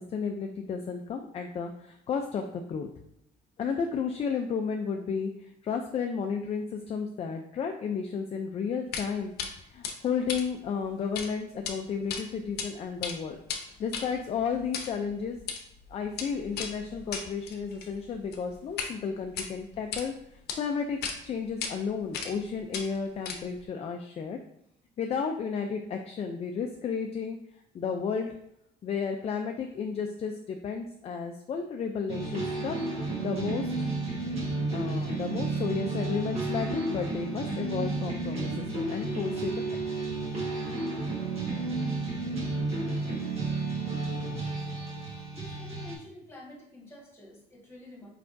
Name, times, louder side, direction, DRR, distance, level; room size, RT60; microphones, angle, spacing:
voice 1, 0.1-2.9 3.6-9.3 9.7-13.4 13.8-15.4 15.9-20.1 20.6-21.0 21.2-24.4 25.0-27.4 27.7-28.3 28.8-32.8 33.2-33.7 34.7-40.0, left 6 dB, 40° left, 3 dB, 0.4 m, -32 dB
sound 1, 8.9-9.1 9.4-9.5 9.8-11.3 11.5-11.7 12.1-12.7 12.9-18.9 19.3-20.0 20.5-20.6 21.0-21.2 21.6-21.7 22.1-22.4 22.7-23.6, left 6 dB, 75° left, 0.7 m, -36 dB
sound 2, 32.1-46.0, right 3 dB, 35° right, 1.4 m, -32 dB
voice 2, 45.3-48.1, left 1 dB, 15° left, -3 dB, 1.5 m, -48 dB
4.8 x 3.3 x 2.6 m, 0.76 s
cardioid pair, 110°, 17 cm